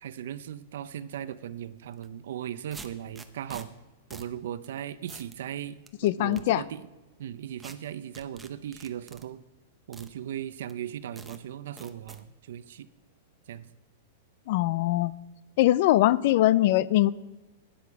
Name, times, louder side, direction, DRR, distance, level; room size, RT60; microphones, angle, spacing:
voice 1, 0.0-3.7 4.1-6.9 7.2-9.4 9.9-12.9 13.5-13.7, right 10 dB, 75° right, 15 dB, 0.6 m, -38 dB
sound 1, 1.9-2.1 2.7-3.6 4.1-4.3 4.6-4.7 5.1-5.4 5.9-6.4 7.6-7.7 8.1-9.2 9.9-10.1 10.7-10.8 11.2-11.4 11.8-12.2, right 3 dB, 5° right, 0.7 m, -46 dB
voice 2, 6.0-6.6 14.5-15.1 15.6-17.1, left 15 dB, 50° left, 20 dB, 0.4 m, -22 dB
12.0 x 10.5 x 4.7 m, 1.1 s
supercardioid pair, 155°, 0 cm